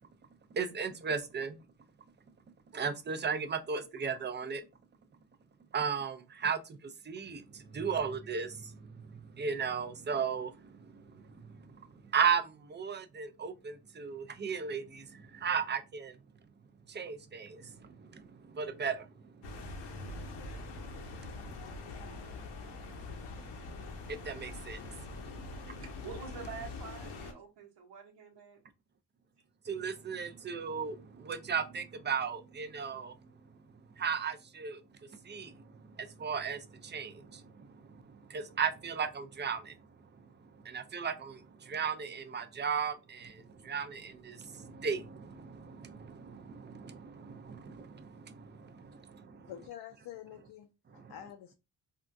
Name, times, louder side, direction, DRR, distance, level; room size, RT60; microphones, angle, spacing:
voice 1, 0.5-1.6 2.7-4.7 5.7-16.2 16.9-25.8 29.6-49.5 50.9-51.2, right 6 dB, 25° right, 0.5 m, -37 dB
sound 1, 19.4-27.3, left 3 dB, 90° left, 0.8 m, -44 dB
voice 2, 25.8-28.6, right 6 dB, 80° right, 0.9 m, -47 dB
voice 3, 49.5-51.5, left 11 dB, 65° left, 0.5 m, -47 dB
3.5 x 2.2 x 2.6 m
cardioid pair, 75°, 41 cm